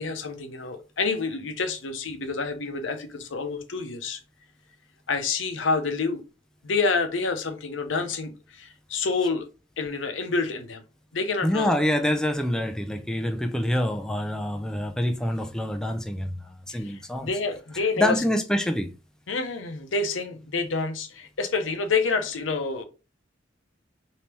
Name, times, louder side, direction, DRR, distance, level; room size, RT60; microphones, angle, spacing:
voice 1, 0.0-4.2 5.1-6.2 6.6-9.5 9.8-10.8 11.1-11.8 16.7-18.2 19.3-22.8, left 4 dB, 90° left, 0.7 m, -28 dB
voice 2, 11.4-17.3 18.0-18.9, left 1 dB, 5° left, 0.3 m, -26 dB
3.3 x 2.8 x 3.0 m
head